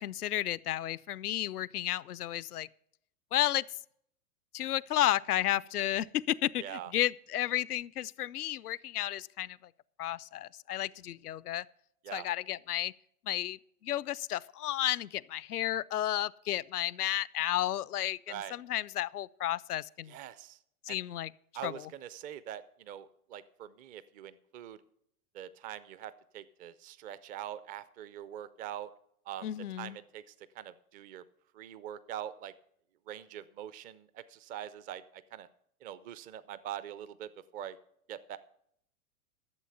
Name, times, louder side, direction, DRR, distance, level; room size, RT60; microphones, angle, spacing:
voice 1, 0.0-2.7 3.3-3.6 4.5-9.6 10.0-11.7 12.1-12.9 13.3-20.2 20.9-21.3 21.6-21.9 29.4-30.0, left 13 dB, 80° left, 0.5 m, -32 dB
voice 2, 6.6-6.9 12.0-12.3 18.3-18.5 20.1-20.6 20.9-21.0 21.5-24.8 25.3-28.9 29.3-29.5 29.8-31.2 31.5-32.5 33.1-35.5 35.8-37.8 38.1-38.4, right 11 dB, 20° right, 0.4 m, -43 dB
12.0 x 7.4 x 6.9 m
figure-of-eight pair, 95°, 45 cm